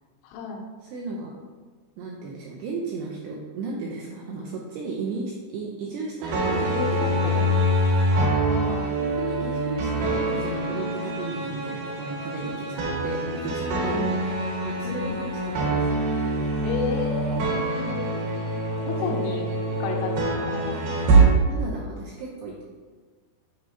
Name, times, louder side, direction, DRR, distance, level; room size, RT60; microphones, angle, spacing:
voice 1, 0.2-0.6 6.4-7.4 8.1-8.9 13.9-14.4 14.8-15.2 16.6-18.5 18.8-19.5 19.8-20.8, left 4 dB, 80° left, 0 dB, 3.0 m, -33 dB
voice 2, 0.8-1.4 2.0-7.4 9.1-14.0 14.7-15.9 19.1-19.3 21.5-22.6, right 4 dB, 85° right, -3 dB, 2.5 m, -34 dB
sound 1, 6.2-21.2, right 1 dB, 70° right, 2.5 m, -25 dB
9.7 x 4.3 x 2.7 m, 1.4 s
omnidirectional pair, 5.5 m